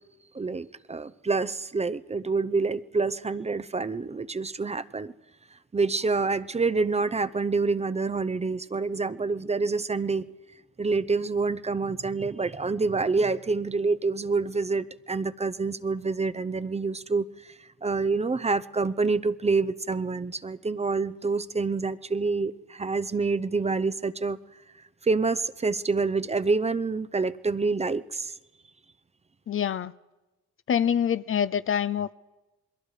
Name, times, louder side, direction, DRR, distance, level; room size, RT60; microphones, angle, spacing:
voice 1, 0.3-5.1 5.7-10.3 10.8-17.5 17.8-24.4 25.0-28.4, right 4 dB, 20° right, 0.7 m, -27 dB
voice 2, 29.5-29.9 30.7-32.1, left 8 dB, 45° left, 0.6 m, -25 dB
28.5 x 22.0 x 4.9 m
cardioid pair, 90°, 30 cm